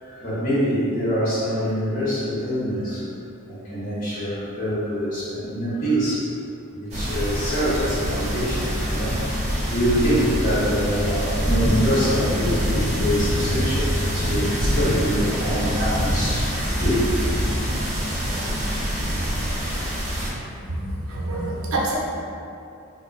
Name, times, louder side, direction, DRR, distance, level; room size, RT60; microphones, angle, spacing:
voice 1, 0.0-3.1 3.5-6.3 6.7-16.5 16.7-17.1, equal, 40° left, -10 dB, 1.0 m, -25 dB
sound 1, 6.9-20.3, equal, 30° right, 0.8 m, -25 dB
voice 2, 20.7-21.9, right 2 dB, 70° right, -3 dB, 0.5 m, -27 dB
3.6 x 2.6 x 2.5 m, 2.6 s
head